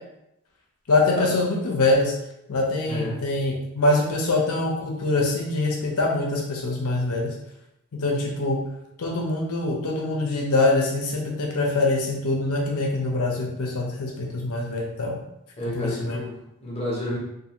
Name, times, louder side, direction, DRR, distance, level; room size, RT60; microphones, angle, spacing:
voice 1, 0.9-2.1 2.5-7.3 7.9-8.6 9.0-15.1 15.7-16.2, left 2 dB, 75° left, -1 dB, 0.7 m, -24 dB
voice 2, 2.9-3.2 15.6-17.2, left 1 dB, 25° left, -5 dB, 0.8 m, -30 dB
2.6 x 2.6 x 2.8 m, 0.85 s
head